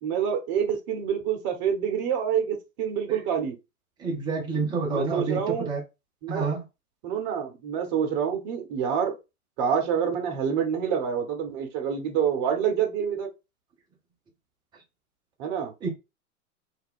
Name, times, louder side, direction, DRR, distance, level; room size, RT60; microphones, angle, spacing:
voice 1, 0.0-3.6 4.9-5.7 6.2-6.5 7.0-9.1 9.6-13.3 15.4-15.7, right 8 dB, 30° right, 0.8 m, -27 dB
voice 2, 4.0-5.8 6.3-6.6 15.8-15.9, right 4 dB, 10° right, 0.5 m, -28 dB
2.5 x 2.1 x 3.6 m
figure-of-eight pair, 105°, 45 cm